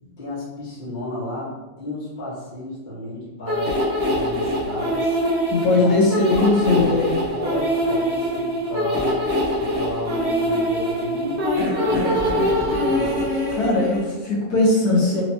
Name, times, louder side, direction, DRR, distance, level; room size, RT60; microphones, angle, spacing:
voice 1, 0.0-3.8 4.0-5.2 5.7-6.1 6.7-7.0 7.3-9.2 9.6-11.4 11.8-13.5, left 1 dB, 30° left, -8 dB, 1.4 m, -33 dB
sound 1, 3.5-14.0, equal, 45° right, 1.2 m, -23 dB
voice 2, 5.5-7.2 13.5-15.2, left 2 dB, 70° left, -6 dB, 1.4 m, -19 dB
4.5 x 2.8 x 2.8 m, 1.1 s
omnidirectional pair, 1.8 m